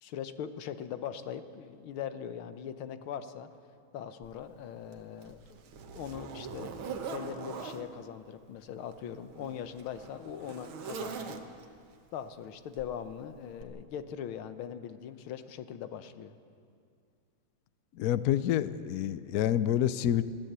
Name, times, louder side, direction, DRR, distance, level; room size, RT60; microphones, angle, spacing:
voice 1, 0.0-3.5 3.9-5.6 6.0-11.3 12.1-16.3, left 9 dB, 90° left, 11 dB, 1.8 m, -41 dB
Zipper (clothing), 4.2-4.3 4.9-7.9 8.8-11.8 12.8-13.0 13.6-13.7, right 5 dB, 85° right, 2.1 m, -42 dB
voice 2, 18.0-20.2, left 11 dB, 70° left, 15 dB, 0.9 m, -28 dB
22.0 x 15.0 x 8.1 m, 2.3 s
omnidirectional pair, 2.2 m